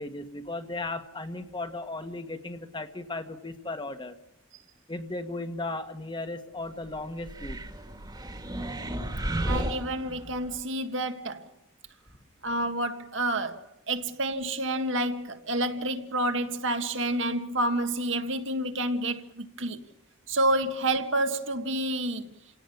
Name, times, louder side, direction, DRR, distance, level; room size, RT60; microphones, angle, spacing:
voice 1, 0.0-4.2 4.9-7.6, left 2 dB, 25° left, 1.5 m, -36 dB
sound 1, 7.2-10.6, right 1 dB, 20° right, 1.9 m, -33 dB
voice 2, 9.5-11.5 12.4-19.8 20.3-22.3, right 1 dB, 70° right, 1.9 m, -29 dB
29.0 x 17.5 x 7.1 m
head